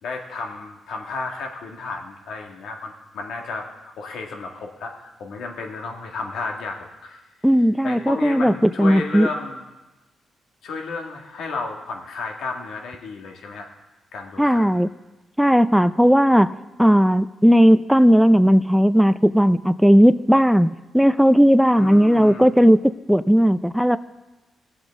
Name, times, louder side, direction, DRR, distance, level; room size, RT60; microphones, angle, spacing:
voice 1, 0.0-7.2 7.8-9.6 10.6-13.7 14.1-14.8 21.8-22.5, left 3 dB, 80° left, 2 dB, 1.8 m, -33 dB
voice 2, 7.4-9.3 14.4-14.9 15.4-16.5 16.8-22.8 23.1-24.0, equal, ahead, 13 dB, 0.4 m, -16 dB
20.0 x 7.9 x 3.6 m, 1.1 s
cardioid pair, 100°, 0 cm